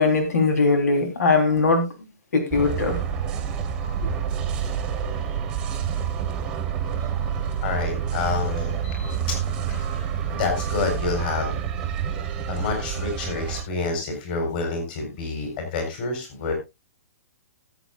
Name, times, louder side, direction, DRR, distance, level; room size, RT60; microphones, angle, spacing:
voice 1, 0.0-1.9 2.3-3.0, left 3 dB, 85° left, 5 dB, 3.6 m, -20 dB
sound 1, 2.5-13.6, right 8 dB, 10° right, 1.2 m, -28 dB
voice 2, 7.6-9.4 10.3-11.7 12.5-16.5, left 4 dB, 35° left, 4 dB, 4.2 m, -28 dB
19.5 x 8.1 x 2.4 m, 0.23 s
hypercardioid pair, 175°, 8 cm